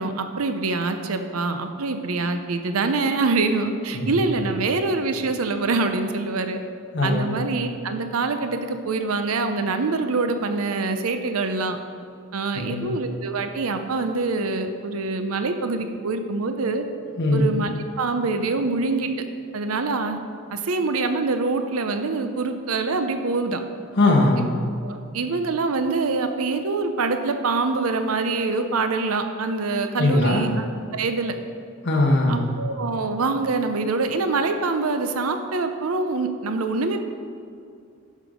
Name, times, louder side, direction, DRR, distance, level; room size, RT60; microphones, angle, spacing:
voice 1, 0.0-6.6 7.0-11.8 12.3-16.8 17.3-19.1 19.5-20.2 20.5-23.6 24.4-24.5 24.8-30.7 30.9-31.3 32.3-37.0, right 3 dB, 85° right, 7 dB, 0.7 m, -25 dB
voice 2, 6.9-7.3 12.5-12.9 17.2-17.5 24.0-24.4 30.0-30.5 31.8-32.5, left 2 dB, 55° left, -2 dB, 1.3 m, -20 dB
11.0 x 6.5 x 5.1 m, 2.4 s
head